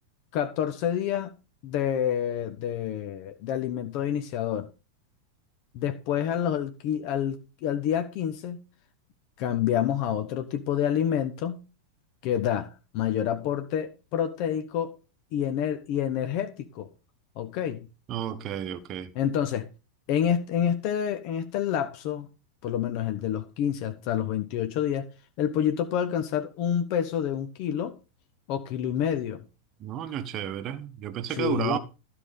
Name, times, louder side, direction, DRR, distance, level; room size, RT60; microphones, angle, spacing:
voice 1, 0.3-1.3 1.6-4.7 5.7-8.6 9.4-11.6 12.2-15.0 15.3-16.9 17.4-17.9 19.1-19.7 20.1-22.3 22.6-25.1 25.4-28.0 28.5-29.4 31.3-31.8, left 9 dB, 45° left, 1.0 m, -28 dB
voice 2, 18.1-19.1 29.8-31.8, right 10 dB, 35° right, 1.1 m, -32 dB
13.0 x 4.9 x 5.3 m
figure-of-eight pair, 90°, 0 cm